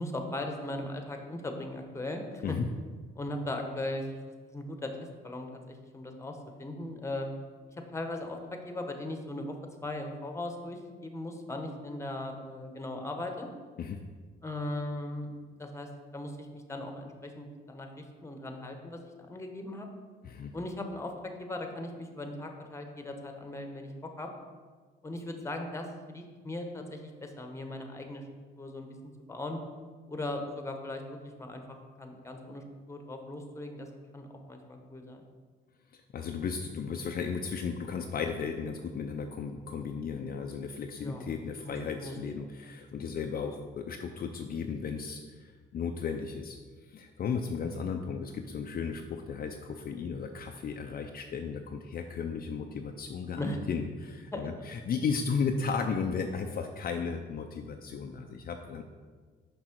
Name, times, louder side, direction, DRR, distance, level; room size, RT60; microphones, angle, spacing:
voice 1, 0.0-2.6 3.2-4.1 4.5-4.9 5.2-7.3 7.9-9.6 9.8-13.5 14.4-15.3 15.6-19.9 20.5-24.3 25.0-28.3 28.6-28.9 29.3-29.6 30.1-32.6 32.9-33.9 34.1-35.2 41.0-41.3 41.6-42.2 47.6-47.7 53.4-53.6 54.3-54.5, left 1 dB, 15° left, 4 dB, 1.0 m, -38 dB
voice 2, 35.9-46.6 46.8-58.8, left 5 dB, 50° left, 4 dB, 0.5 m, -35 dB
6.2 x 5.5 x 4.5 m, 1.5 s
cardioid pair, 90°, 20 cm